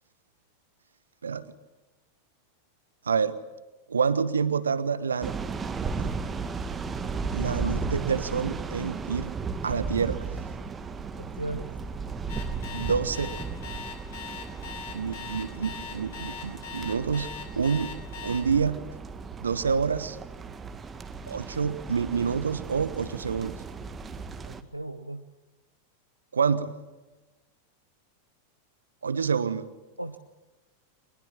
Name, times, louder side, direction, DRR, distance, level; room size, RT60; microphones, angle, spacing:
voice 1, 3.0-3.4 3.9-5.4 6.0-6.1 7.3-9.3 9.6-10.3 12.7-13.4 14.9-17.3 17.6-17.9 18.2-18.8 19.4-20.2 21.3-23.6 26.3-26.7 29.0-29.7, right 6 dB, 70° right, 14 dB, 1.3 m, -27 dB
sound 1, 5.2-24.6, right 4 dB, 20° right, 1.6 m, -35 dB
voice 2, 11.2-11.7 24.5-25.2 30.0-30.2, right 2 dB, 90° right, 7 dB, 0.9 m, -36 dB
Alarm, 12.3-18.4, left 7 dB, 55° left, 5.3 m, -40 dB
23.0 x 21.5 x 8.8 m, 1.1 s
figure-of-eight pair, 90°, 0 cm